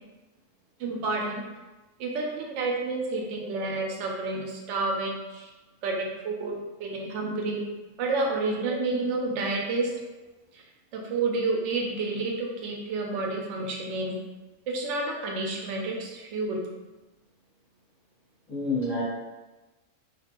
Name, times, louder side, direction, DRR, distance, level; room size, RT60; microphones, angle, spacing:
voice 1, 0.8-1.4 2.0-5.5 5.8-7.6 8.0-10.0 10.5-10.6 10.9-14.1 14.7-16.6, right 3 dB, 65° right, 0 dB, 0.7 m, -30 dB
voice 2, 3.1-3.5 8.6-8.7 18.5-19.0, left 2 dB, 35° left, -11 dB, 0.6 m, -30 dB
2.5 x 2.3 x 2.9 m, 1.1 s
omnidirectional pair, 1.6 m